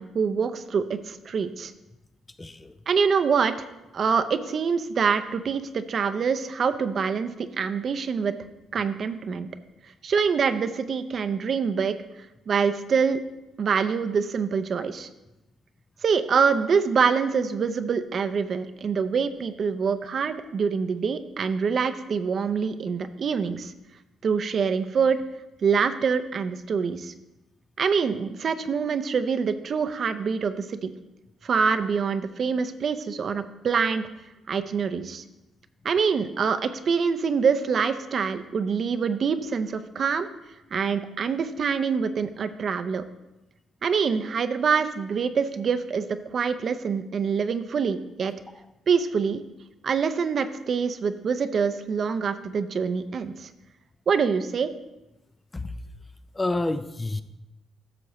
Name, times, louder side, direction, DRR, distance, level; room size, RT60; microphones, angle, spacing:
voice 1, 0.0-1.7 2.9-3.7 3.9-8.3 8.7-9.5 10.0-11.9 12.5-13.2 13.6-15.1 16.0-23.7 24.2-25.2 25.6-27.1 27.8-30.9 31.4-34.1 34.5-35.2 35.8-40.3 40.7-43.0 43.8-46.1 46.3-48.3 48.9-49.4 49.8-53.5 54.1-54.7, right 6 dB, 50° right, 0.6 m, -25 dB
voice 2, 2.4-2.7 55.5-55.7 56.3-57.2, left 2 dB, 20° left, 0.4 m, -29 dB
12.5 x 6.9 x 3.1 m
cardioid pair, 90°, 0 cm